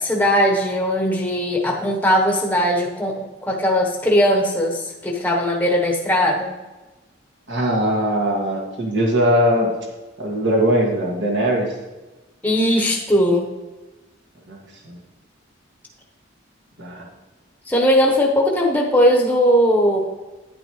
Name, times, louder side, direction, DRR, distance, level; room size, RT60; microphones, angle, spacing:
voice 1, 0.0-6.5 12.4-13.5 17.7-20.0, equal, 10° left, -1 dB, 1.0 m, -19 dB
voice 2, 7.5-9.7 10.2-11.7 14.5-14.6 14.8-15.0 16.8-17.0, equal, 65° right, -1 dB, 2.0 m, -20 dB
10.0 x 8.5 x 3.1 m, 1.1 s
head